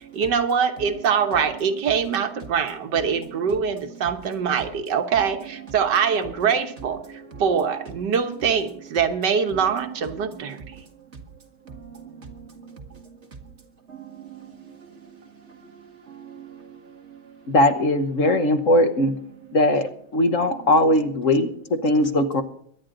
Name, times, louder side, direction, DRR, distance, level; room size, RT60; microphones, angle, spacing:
voice 1, 0.0-10.8, right 6 dB, 80° right, 1.8 m, -24 dB
voice 2, 7.1-7.4 10.2-11.1 11.7-13.2 13.9-17.5 18.3-18.4, right 7 dB, 40° right, 2.4 m, -44 dB
voice 3, 17.5-19.2 19.5-22.4, left 1 dB, 50° left, 1.3 m, -20 dB
23.0 x 9.9 x 3.9 m
omnidirectional pair, 1.8 m